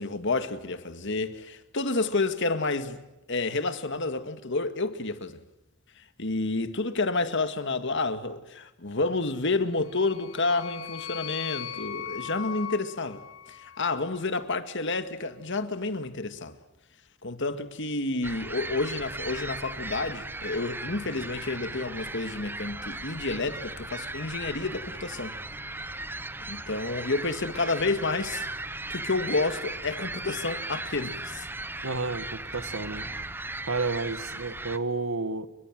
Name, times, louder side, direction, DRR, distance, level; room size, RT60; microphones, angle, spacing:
voice 1, 0.0-3.0 3.3-5.4 6.0-16.6 17.2-25.3 26.5-28.5 28.9-31.5, left 3 dB, 60° left, 2.2 m, -30 dB
sound 1, 9.8-14.2, left 9 dB, 75° left, 1.9 m, -39 dB
sound 2, 18.2-34.8, right 2 dB, 10° right, 0.9 m, -37 dB
voice 2, 31.8-33.1 33.7-35.5, right 3 dB, 75° right, 1.8 m, -31 dB
30.0 x 23.5 x 7.7 m
head